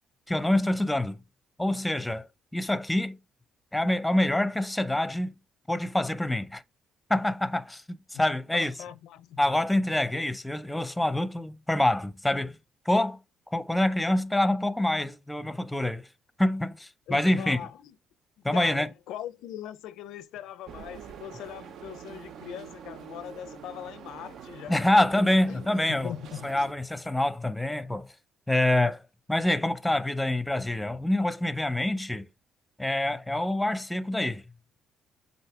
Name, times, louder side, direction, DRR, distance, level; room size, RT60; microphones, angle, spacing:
voice 1, 0.3-1.2 1.6-2.3 2.5-3.2 3.7-5.3 5.7-6.6 7.1-8.7 9.4-12.6 12.9-13.2 13.5-16.1 16.4-17.6 18.4-18.9 24.7-26.1 26.4-28.1 28.5-29.0 29.3-32.3 32.8-34.4, left 1 dB, 5° left, 0.6 m, -26 dB
voice 2, 8.5-9.6 10.0-10.1 17.1-17.9 18.5-24.8 25.5-26.6, left 11 dB, 85° left, 0.5 m, -41 dB
sound 1, 20.7-26.7, right 8 dB, 70° right, 0.6 m, -45 dB
7.7 x 2.6 x 4.8 m
cardioid pair, 85°, 0 cm